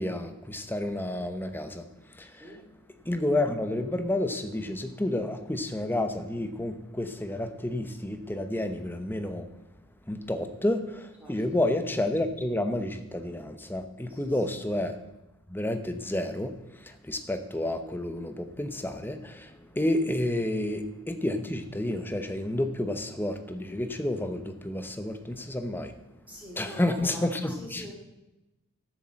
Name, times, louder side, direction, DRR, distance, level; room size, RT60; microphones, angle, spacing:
voice 1, 0.0-1.9 2.1-2.5 3.0-9.5 10.1-15.0 15.5-26.0 26.6-27.9, left 1 dB, 10° left, 8 dB, 0.9 m, -30 dB
voice 2, 26.3-27.9, equal, 5° right, -2 dB, 2.5 m, -44 dB
12.5 x 7.3 x 7.7 m, 0.97 s
head